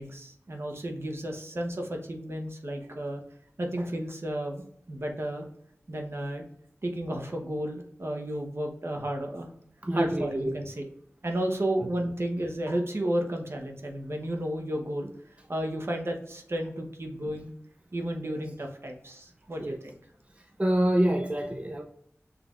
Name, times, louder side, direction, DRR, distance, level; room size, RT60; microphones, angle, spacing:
voice 1, 0.0-3.2 3.6-5.5 5.9-6.4 6.8-9.5 9.9-10.8 11.2-15.1 15.5-17.5 17.9-20.0, right 1 dB, 55° right, 2 dB, 0.9 m, -32 dB
voice 2, 9.8-10.6 19.6-19.8 20.6-21.8, right 1 dB, 25° right, 2 dB, 0.5 m, -26 dB
5.9 x 3.3 x 2.4 m, 0.68 s
wide cardioid pair, 45°, 5 cm